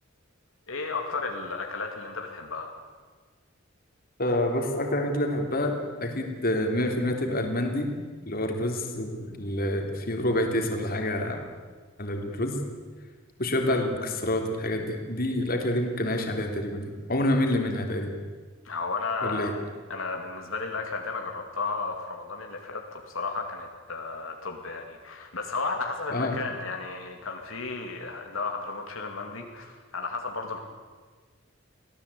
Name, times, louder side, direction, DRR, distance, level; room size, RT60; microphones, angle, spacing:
voice 1, 0.7-2.8 18.6-19.5 19.9-30.6, left 4 dB, 75° left, 2 dB, 2.5 m, -33 dB
voice 2, 4.2-7.9 8.2-11.4 12.0-12.6 13.4-18.1 19.2-19.5 26.1-26.4, left 1 dB, 45° left, 4 dB, 3.4 m, -27 dB
25.0 x 17.5 x 8.6 m, 1.5 s
head